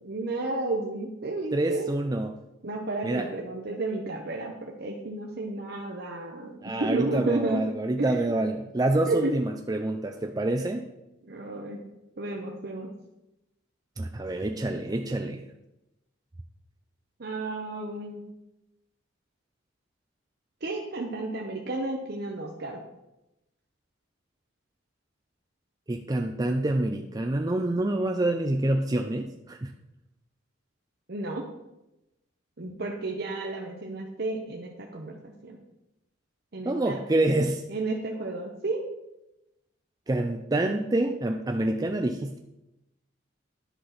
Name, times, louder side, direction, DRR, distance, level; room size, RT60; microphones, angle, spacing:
voice 1, 0.0-1.9 2.6-7.6 8.0-8.4 9.1-9.3 11.2-11.8 12.2-12.9 17.2-18.2 20.6-22.8 31.1-31.5 32.6-35.6 36.5-37.0 37.7-38.8, right 2 dB, 55° right, 0 dB, 0.9 m, -32 dB
voice 2, 1.5-2.3 3.0-3.3 6.6-10.8 14.0-15.4 25.9-29.7 36.7-37.6 40.1-42.4, right 1 dB, 20° right, 4 dB, 0.4 m, -27 dB
10.5 x 6.0 x 4.1 m, 0.92 s
head